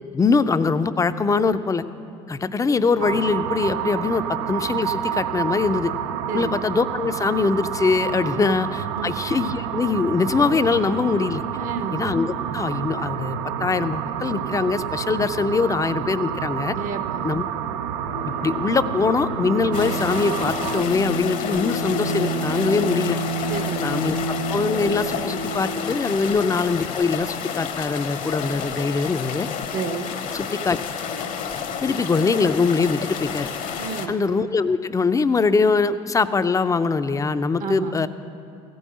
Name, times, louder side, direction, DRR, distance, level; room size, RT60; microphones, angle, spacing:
voice 1, 0.1-1.8 2.3-5.9 6.3-11.4 11.9-16.8 17.2-17.4 18.2-23.2 23.8-24.2 24.5-29.5 30.3-30.8 31.8-33.5 34.1-38.1, left 4 dB, 20° left, 12 dB, 0.5 m, -22 dB
sound 1, 3.0-20.8, right 10 dB, 80° right, 0.4 m, -29 dB
voice 2, 11.6-11.9 16.7-17.3 23.5-23.9 26.3-26.4 29.7-30.1 33.8-34.1 37.6-38.0, right 6 dB, 60° right, 8 dB, 0.9 m, -31 dB
Bowed string instrument, 18.0-26.5, right 1 dB, 85° left, 0.8 m, -29 dB
sound 2, 19.7-34.1, left 7 dB, 55° left, 1.0 m, -30 dB
15.0 x 5.4 x 8.5 m, 2.6 s
hypercardioid pair, 70°, 15 cm